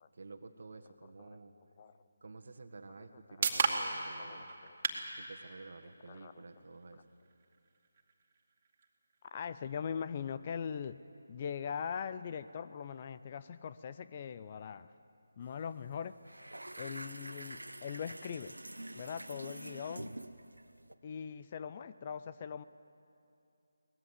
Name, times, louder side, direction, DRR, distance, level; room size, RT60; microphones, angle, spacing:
voice 1, 0.1-1.5 2.2-4.5 5.1-7.0, right 3 dB, 55° right, 6 dB, 1.7 m, -51 dB
sound 1, 2.7-16.6, right 4 dB, 35° right, 2.3 m, -42 dB
voice 2, 4.2-4.8 6.1-6.3 9.3-11.0 11.3-14.9 15.4-16.2 16.8-18.6 18.9-20.2 21.0-22.6, left 7 dB, 35° left, 13 dB, 0.6 m, -41 dB
sound 2, 15.4-15.6 15.9-20.9, right 1 dB, 85° right, 1.0 m, -47 dB
23.0 x 19.5 x 8.3 m, 2.6 s
figure-of-eight pair, 155°, 0 cm